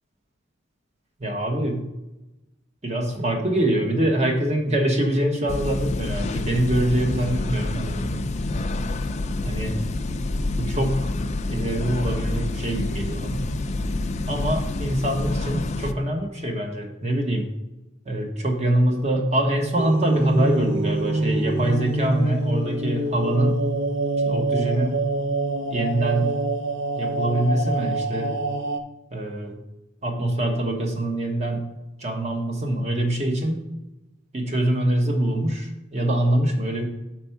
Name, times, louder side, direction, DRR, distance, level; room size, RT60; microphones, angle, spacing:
voice 1, 1.2-1.8 2.8-8.2 9.4-9.7 10.6-11.1 11.5-13.5 14.3-17.5 18.1-23.6 24.3-25.0 25.7-26.3 26.9-28.4 29.1-29.5 30.0-31.6 32.0-33.6 34.3-36.8, right 1 dB, 30° right, 2 dB, 1.1 m, -24 dB
sound 1, 5.5-15.9, left 2 dB, 35° left, 0.4 m, -27 dB
sound 2, 19.8-28.8, right 2 dB, 60° right, 0.6 m, -25 dB
6.0 x 4.5 x 5.7 m, 0.96 s
head